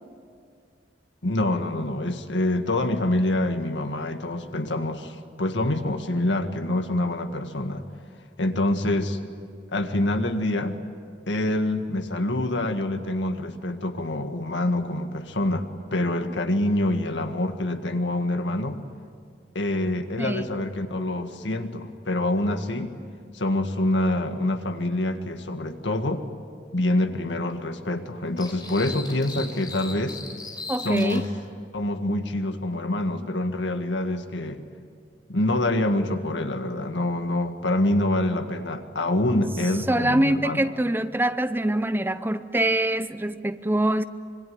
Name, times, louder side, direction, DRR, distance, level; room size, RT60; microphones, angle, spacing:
voice 1, 1.2-7.8 8.4-9.2 9.7-10.8 11.3-15.7 15.9-18.8 19.6-22.9 23.3-26.3 26.7-30.2 30.8-31.2 31.7-34.6 35.3-40.7, left 1 dB, 85° left, 6 dB, 1.9 m, -26 dB
voice 2, 20.2-20.5 30.7-31.2 39.9-44.0, right 1 dB, 10° right, 12 dB, 0.7 m, -24 dB
sound 1, 28.4-31.3, left 3 dB, 25° left, 4.8 m, -38 dB
25.5 x 23.5 x 9.5 m, 2.2 s
head